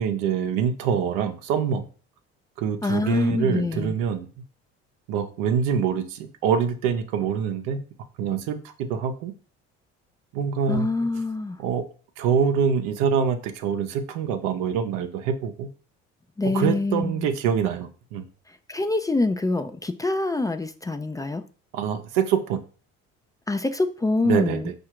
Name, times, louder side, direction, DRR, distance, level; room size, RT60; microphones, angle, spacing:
voice 1, 0.0-1.9 2.6-4.3 5.1-7.8 8.2-9.3 10.3-10.9 11.6-11.8 12.2-15.7 16.5-18.2 21.7-22.6 24.2-24.7, right 7 dB, 80° right, 7 dB, 0.7 m, -25 dB
voice 2, 2.8-4.0 10.7-11.6 16.4-17.3 18.7-21.4 23.5-24.7, left 2 dB, 10° left, 9 dB, 0.4 m, -25 dB
4.7 x 2.5 x 4.5 m, 0.39 s
supercardioid pair, 75°, 30 cm